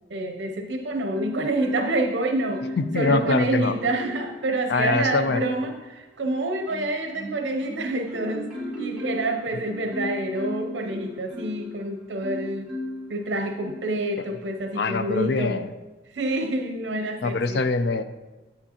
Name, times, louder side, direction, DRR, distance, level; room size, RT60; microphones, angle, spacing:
voice 1, 0.1-12.7 13.1-15.6 16.1-17.6, right 2 dB, 80° right, 4 dB, 0.6 m, -28 dB
Marimba xylophone, 1.1-2.1 2.5-4.3 4.8-5.7 6.2-11.7 12.2-13.1 13.6-13.9, left 1 dB, 5° right, 2.9 m, -35 dB
voice 2, 2.8-3.7 4.7-5.4 14.8-15.7 17.2-18.0, left 3 dB, 65° left, 11 dB, 0.4 m, -24 dB
8.7 x 8.7 x 2.9 m, 1.2 s
head